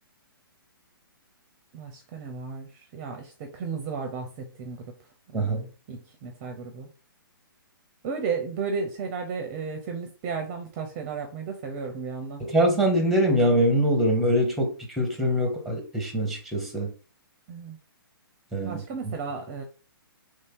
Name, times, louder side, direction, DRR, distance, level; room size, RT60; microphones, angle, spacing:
voice 1, 1.7-4.9 5.3-6.9 8.0-12.4 17.5-17.8 18.6-19.6, right 5 dB, 30° right, 0.5 m, -34 dB
voice 2, 12.4-16.9 18.5-18.8, equal, ahead, 0.8 m, -23 dB
3.1 x 2.7 x 3.5 m
hypercardioid pair, 140°, 12 cm